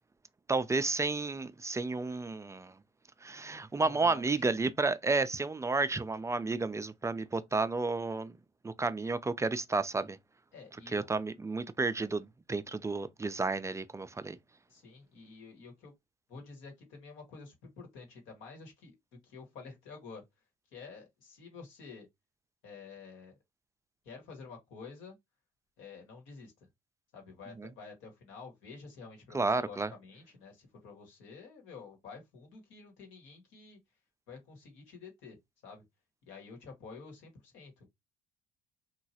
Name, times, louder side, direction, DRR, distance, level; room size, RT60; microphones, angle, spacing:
voice 1, 0.5-2.8 3.2-8.4 8.6-10.2 10.9-14.4 27.6-27.7 29.3-29.9, right 3 dB, 15° right, 0.3 m, -31 dB
voice 2, 3.8-4.4 10.5-11.1 14.7-15.9 16.3-18.9 19.2-20.2 20.7-22.1 22.6-23.4 24.0-25.2 25.8-26.5 27.1-33.8 34.3-35.4 35.6-35.8 36.3-37.9, left 4 dB, 70° left, 1.3 m, -49 dB
2.9 x 2.4 x 2.7 m
hypercardioid pair, 65°, 20 cm